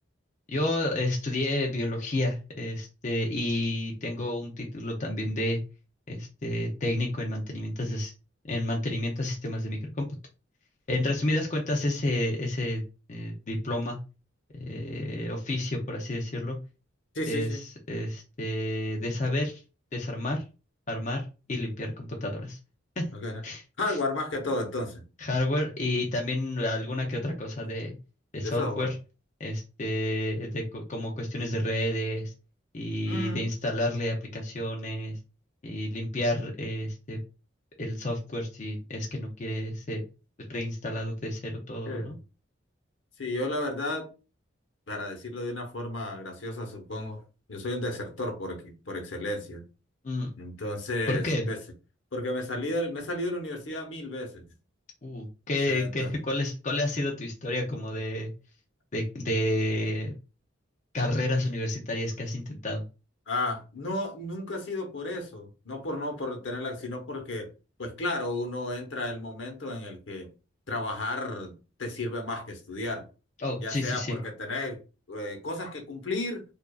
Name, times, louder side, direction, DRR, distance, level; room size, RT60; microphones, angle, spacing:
voice 1, 0.5-5.6 6.1-8.1 8.5-10.1 10.9-12.8 13.1-14.0 14.5-16.6 17.3-19.6 19.9-20.4 20.9-22.6 23.0-23.1 23.4-23.6 23.9-24.0 25.2-28.0 28.3-28.9 29.4-32.3 32.7-35.2 35.6-37.2 37.8-40.0 40.5-42.2 50.0-50.3 51.1-51.4 55.0-58.3 58.9-60.1 60.9-62.8 73.4-74.2, left 1 dB, 40° left, 0.6 m, -30 dB
voice 2, 17.1-17.6 23.1-23.4 23.8-25.0 28.4-28.9 33.0-33.5 41.8-42.2 43.2-44.1 44.9-47.2 47.5-49.6 50.4-51.6 52.1-54.4 55.7-56.1 63.3-67.5 67.8-70.3 70.7-73.0 73.6-74.8 75.1-76.4, left 2 dB, 70° left, 1.0 m, -33 dB
4.8 x 2.6 x 2.4 m
head